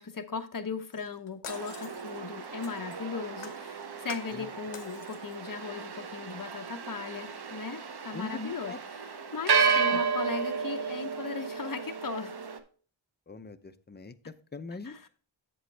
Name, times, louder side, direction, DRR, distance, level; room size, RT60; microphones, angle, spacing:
voice 1, 0.0-8.8 9.3-12.3 14.8-15.1, left 5 dB, 40° left, 7 dB, 0.9 m, -37 dB
Shatter, 0.9-3.0 3.4-4.4 4.7-5.5 5.8-5.9, left 8 dB, 85° left, 0.8 m, -47 dB
sound 1, 1.5-12.6, right 6 dB, 50° right, 0.9 m, -33 dB
voice 2, 8.1-8.8 9.9-10.0 13.3-14.1 14.5-15.1, left 3 dB, 20° left, 10 dB, 0.6 m, -41 dB
7.8 x 7.6 x 3.3 m, 0.40 s
wide cardioid pair, 95°, 48 cm